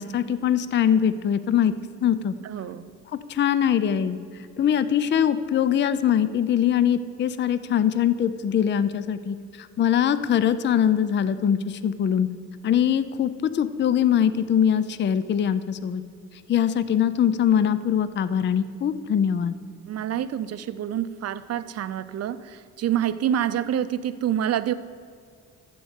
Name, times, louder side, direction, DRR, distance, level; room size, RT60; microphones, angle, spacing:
voice 1, 0.0-1.7 2.0-2.3 3.3-4.2 4.6-12.3 12.6-16.0 16.5-19.6, left 9 dB, 40° left, 14 dB, 0.5 m, -22 dB
voice 2, 2.4-2.9 19.9-24.7, right 10 dB, 55° right, 14 dB, 0.6 m, -27 dB
12.5 x 4.6 x 8.3 m, 2.3 s
cardioid pair, 90°, 30 cm